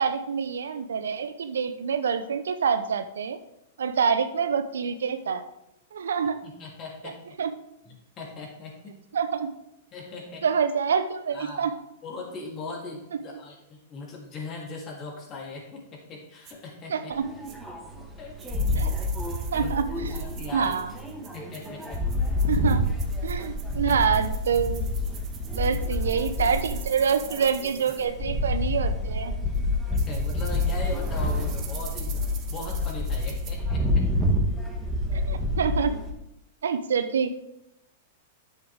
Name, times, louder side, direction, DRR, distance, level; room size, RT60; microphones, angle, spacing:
voice 1, 0.0-3.4 3.8-5.4 5.9-6.4 7.4-7.5 9.1-9.5 10.4-11.7 16.9-17.2 18.7-18.9 19.5-20.1 20.5-20.9 22.5-22.8 23.2-24.9 25.5-29.3 35.1-36.0 36.6-37.4, right 6 dB, 80° right, 10 dB, 0.7 m, -26 dB
voice 2, 6.4-7.2 7.8-9.0 9.9-10.5 11.3-11.7 12.0-17.1 18.2-18.4 19.6-20.7 21.3-22.0 23.9-24.0 25.7-25.9 29.7-29.8 30.1-34.1, left 3 dB, 35° left, -2 dB, 3.3 m, -39 dB
sound 1, 16.4-16.5 17.4-17.6 18.4-28.1 29.5-29.6 30.0-33.5, right 9 dB, 35° right, 1.3 m, -46 dB
sound 2, 17.1-36.1, left 1 dB, 5° right, 1.8 m, -28 dB
10.0 x 7.4 x 3.6 m, 0.89 s
hypercardioid pair, 115°, 0 cm